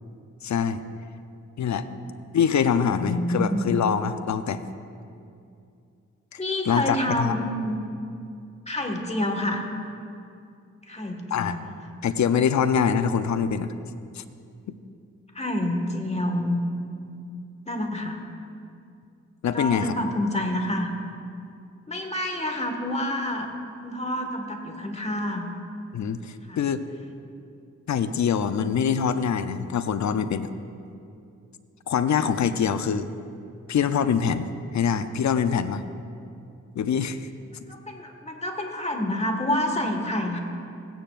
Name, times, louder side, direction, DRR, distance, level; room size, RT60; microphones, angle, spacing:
voice 1, 0.4-0.8 1.6-1.9 2.3-4.6 6.3-7.4 11.3-11.6 12.0-13.7 14.2-14.3 14.7-14.8 19.4-20.0 25.9-26.8 27.9-30.5 31.9-33.1 33.7-35.8 36.8-37.3, left 7 dB, 60° left, 11 dB, 0.6 m, -24 dB
voice 2, 1.8-2.1 2.9-3.8 6.4-7.8 8.7-9.7 10.9-11.7 15.3-16.6 17.7-18.2 19.5-20.9 21.9-23.5 23.8-25.5 26.5-26.6 37.7-40.4, left 1 dB, 20° left, 3 dB, 1.7 m, -28 dB
16.5 x 9.1 x 2.5 m, 2.5 s
supercardioid pair, 40°, 32 cm